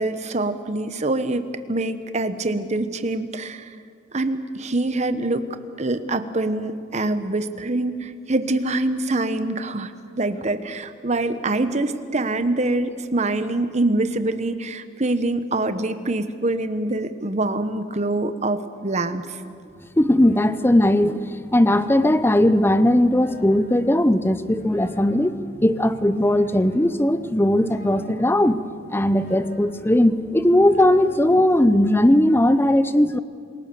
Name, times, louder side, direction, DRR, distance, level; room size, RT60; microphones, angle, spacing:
voice 1, 0.0-1.4 1.7-3.7 4.1-5.4 5.8-9.9 10.2-19.3, right 2 dB, 35° right, 11 dB, 1.1 m, -24 dB
sound 1, 19.7-31.4, left 1 dB, 50° left, 2.5 m, -41 dB
voice 2, 20.0-21.3 21.5-25.3 25.6-28.6 28.9-33.2, left 1 dB, 10° left, 13 dB, 0.7 m, -18 dB
27.5 x 20.0 x 6.9 m, 2.2 s
head